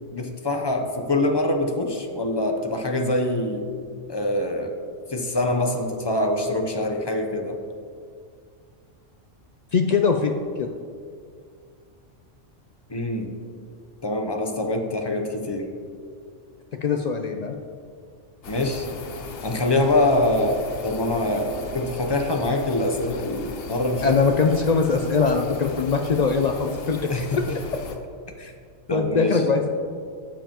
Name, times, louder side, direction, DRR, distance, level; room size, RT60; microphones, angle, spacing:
voice 1, 0.1-3.6 4.1-4.7 5.1-7.6 12.9-13.3 14.0-15.7 18.5-18.9 19.4-24.2 27.1-27.6 28.9-29.4, left 1 dB, 25° left, 3 dB, 0.6 m, -24 dB
voice 2, 9.7-10.3 10.6-10.7 16.8-17.5 24.0-27.4 28.4-28.5 28.9-29.7, left 5 dB, 75° left, 4 dB, 0.3 m, -22 dB
sound 1, 18.4-28.0, left 4 dB, 55° left, 0.9 m, -38 dB
12.5 x 7.2 x 2.9 m, 2.2 s
omnidirectional pair, 1.3 m